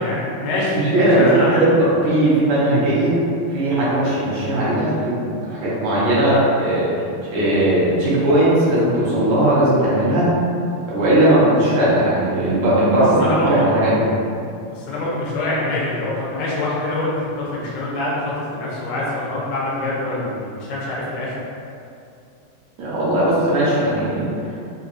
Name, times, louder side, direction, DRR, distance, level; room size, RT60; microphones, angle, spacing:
voice 1, 0.0-1.7 13.2-13.7 14.7-21.4, left 1 dB, 80° left, -6 dB, 2.1 m, -24 dB
voice 2, 0.7-3.2 3.5-6.9 7.2-10.3 10.9-14.1 22.8-24.3, right 1 dB, 70° right, -8 dB, 2.1 m, -18 dB
5.2 x 2.3 x 2.5 m, 2.5 s
omnidirectional pair, 3.7 m